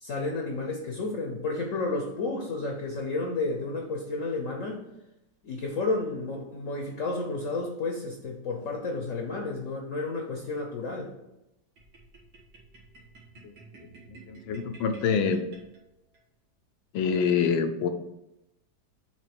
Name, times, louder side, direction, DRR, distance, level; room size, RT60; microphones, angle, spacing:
voice 1, 0.0-4.8 5.4-11.1, left 3 dB, 55° left, 2 dB, 1.0 m, -31 dB
sound 1, 11.8-16.2, right 4 dB, 80° right, 2.3 m, -52 dB
voice 2, 13.4-15.4 16.9-17.9, left 6 dB, 85° left, 8 dB, 1.5 m, -27 dB
7.5 x 3.0 x 5.9 m, 0.90 s
omnidirectional pair, 2.1 m